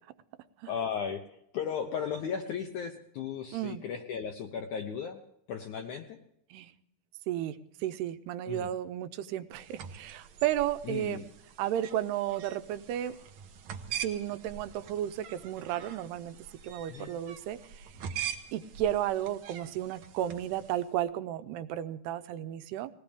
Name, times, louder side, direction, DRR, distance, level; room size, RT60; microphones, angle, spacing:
voice 1, 0.7-1.2 1.5-5.2 5.5-6.2 8.5-8.7 10.8-11.3 16.9-17.1, left 7 dB, 75° left, 4 dB, 1.8 m, -35 dB
voice 2, 7.3-11.2 11.6-13.2 14.0-16.4 16.6-17.9 18.5-22.9, right 12 dB, 85° right, 10 dB, 2.8 m, -33 dB
sound 1, 9.5-20.9, right 8 dB, 65° right, 1.8 m, -43 dB
20.5 x 17.5 x 3.5 m, 0.76 s
omnidirectional pair, 4.6 m